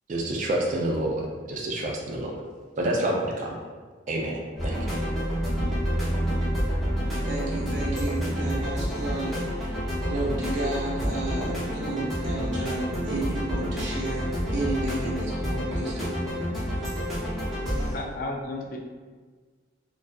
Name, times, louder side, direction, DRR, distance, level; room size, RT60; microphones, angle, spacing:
voice 1, 0.1-2.4 2.8-3.6 4.1-4.9, right 1 dB, 40° right, 0 dB, 0.3 m, -28 dB
sound 1, 4.6-18.0, equal, ahead, 0.6 m, -28 dB
voice 2, 7.3-16.1 17.4-18.1, right 2 dB, 80° right, -4 dB, 0.6 m, -32 dB
voice 3, 17.9-18.8, left 2 dB, 50° left, 1 dB, 0.3 m, -33 dB
2.5 x 2.2 x 2.2 m, 1.5 s
head